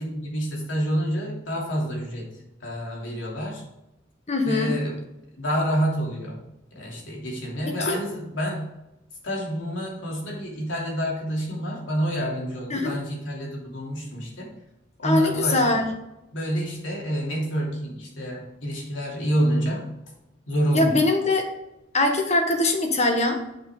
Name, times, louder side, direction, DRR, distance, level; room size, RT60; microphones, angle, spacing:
voice 1, 0.0-2.3 2.6-3.6 4.4-5.0 5.4-6.4 6.7-8.7 9.2-14.5 15.0-15.9 16.3-19.9 20.5-21.0, equal, 75° left, -3 dB, 3.0 m, -28 dB
voice 2, 4.3-4.7 7.7-8.0 12.7-12.9 15.0-15.9 20.7-21.4 21.9-23.4, left 2 dB, 35° left, 4 dB, 1.3 m, -22 dB
7.9 x 5.8 x 4.9 m, 0.92 s
head